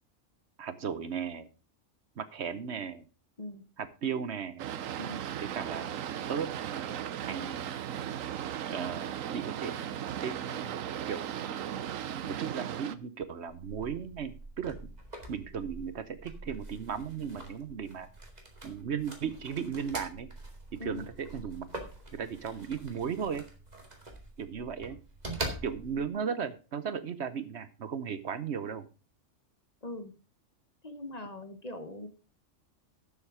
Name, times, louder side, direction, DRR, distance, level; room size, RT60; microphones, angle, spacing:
voice 1, 0.6-1.5 2.2-3.0 3.8-4.6 5.4-5.9 6.3-7.9 8.7-9.8 10.2-11.7 12.3-14.8 15.3-18.1 18.6-20.3 20.8-21.7 22.1-23.5 24.4-25.0 25.6-28.9, right 7 dB, 60° right, 13 dB, 1.1 m, -36 dB
Boat Water vehicle, 4.6-13.0, right 10 dB, 85° right, 1.1 m, -36 dB
sound 1, 13.5-26.1, right 1 dB, 30° right, 2.4 m, -44 dB
voice 2, 29.8-30.1 30.8-32.1, left 2 dB, 35° left, 9 dB, 1.1 m, -41 dB
12.0 x 7.3 x 4.8 m, 0.33 s
omnidirectional pair, 1.3 m